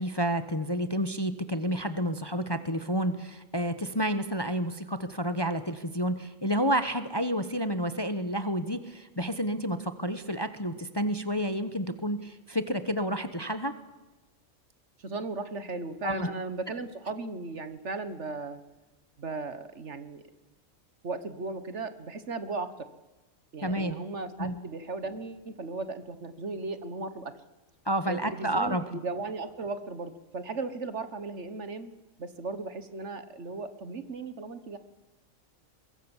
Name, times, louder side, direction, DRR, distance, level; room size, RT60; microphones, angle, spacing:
voice 1, 0.0-13.7 16.0-16.3 23.6-24.0 24.4-24.6 27.8-28.8, equal, 20° left, 10 dB, 1.0 m, -30 dB
voice 2, 15.0-18.6 19.2-20.2 21.0-22.7 23.5-27.3 28.1-31.9 32.2-34.8, right 3 dB, 55° right, 11 dB, 1.7 m, -36 dB
24.0 x 21.5 x 7.3 m, 1.1 s
omnidirectional pair, 1.5 m